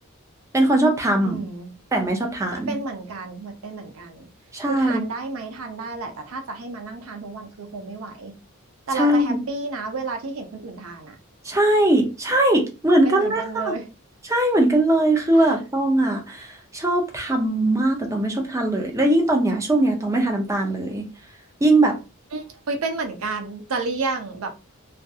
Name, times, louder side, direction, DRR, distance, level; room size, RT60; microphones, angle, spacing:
voice 1, 0.5-1.4 1.9-2.8 4.5-5.0 8.9-9.4 11.4-13.7 14.2-21.1 21.6-22.0, right 1 dB, 15° right, 0.4 m, -20 dB
voice 2, 1.2-1.7 2.5-4.3 4.7-8.4 8.9-11.2 13.0-13.8 15.3-15.5 22.3-24.5, right 3 dB, 70° right, 0.6 m, -31 dB
2.6 x 2.5 x 2.3 m
head